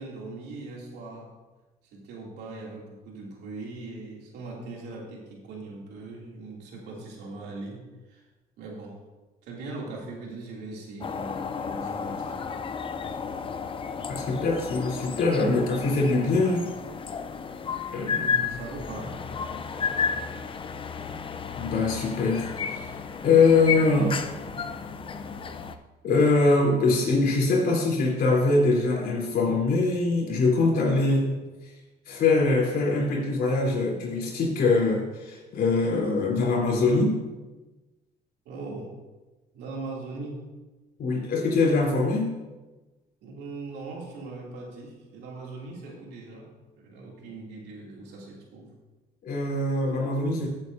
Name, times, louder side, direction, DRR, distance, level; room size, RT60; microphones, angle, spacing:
voice 1, 0.0-1.3 1.9-8.2 8.6-9.0 9.4-12.6 18.1-19.2 24.3-24.5 38.4-38.9 39.5-40.5 43.2-48.7, right 3 dB, 80° right, -2 dB, 2.8 m, -40 dB
sound 1, 11.0-25.8, left 6 dB, 30° left, 0.6 m, -32 dB
voice 2, 14.1-16.7 17.9-18.3 21.5-22.9 23.2-24.2 26.0-31.4 32.1-37.2 41.0-42.3 49.2-50.5, left 3 dB, 65° left, -3 dB, 3.7 m, -23 dB
14.5 x 8.1 x 2.7 m, 1.2 s
cardioid pair, 110°, 17 cm